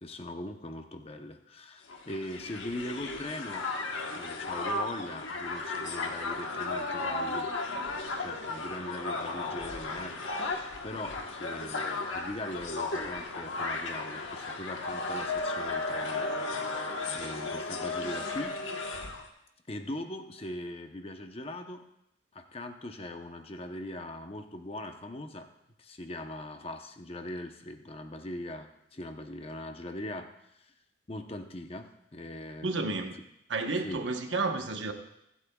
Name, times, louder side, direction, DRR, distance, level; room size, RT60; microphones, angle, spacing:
voice 1, 0.0-3.7 4.1-7.5 8.2-16.9 17.1-18.8 19.7-21.8 22.3-25.5 25.8-30.3 30.6-30.7 31.1-33.0 33.8-34.0, left 1 dB, 30° left, 6 dB, 0.8 m, -41 dB
Crowd, 1.9-19.3, left 3 dB, 85° left, 1.3 m, -35 dB
voice 2, 32.6-33.1 33.5-34.9, right 3 dB, 75° right, 5 dB, 1.1 m, -31 dB
25.0 x 8.4 x 2.4 m, 0.81 s
head